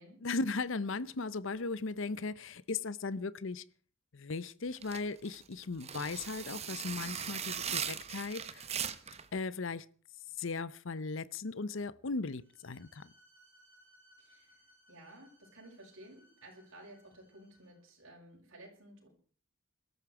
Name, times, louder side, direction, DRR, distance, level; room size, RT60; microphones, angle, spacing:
voice 1, 0.2-3.6 4.1-8.7 9.3-9.9 10.4-13.1, left 3 dB, 60° left, 0.7 m, -37 dB
sound 1, 4.8-9.3, right 8 dB, 30° right, 1.0 m, -39 dB
Bowed string instrument, 12.4-17.9, equal, 10° right, 6.9 m, -66 dB
voice 2, 14.2-19.1, right 1 dB, 65° right, 7.1 m, -55 dB
21.5 x 13.5 x 4.9 m
head